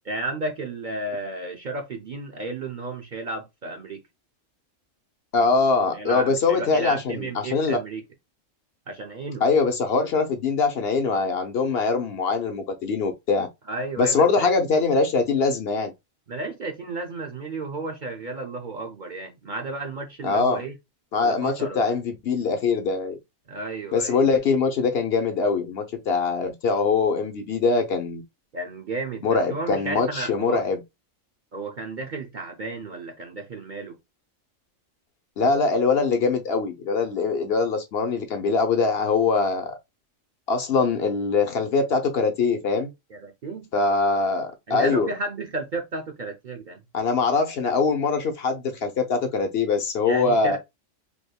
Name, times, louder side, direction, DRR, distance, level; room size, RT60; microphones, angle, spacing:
voice 1, 0.1-4.0 5.9-8.0 8.9-9.4 13.7-14.5 16.3-20.7 21.2-21.9 23.5-24.2 28.5-30.6 31.5-33.9 43.1-43.7 44.7-46.8 50.0-50.6, right 2 dB, 50° right, 0.6 m, -33 dB
voice 2, 5.3-7.8 9.4-13.5 14.0-15.9 20.2-20.6 21.1-23.2 23.9-28.2 29.2-30.8 35.4-39.7 40.5-42.9 43.7-45.1 46.9-50.6, left 4 dB, 60° left, 0.8 m, -23 dB
3.4 x 3.4 x 2.2 m
omnidirectional pair, 1.3 m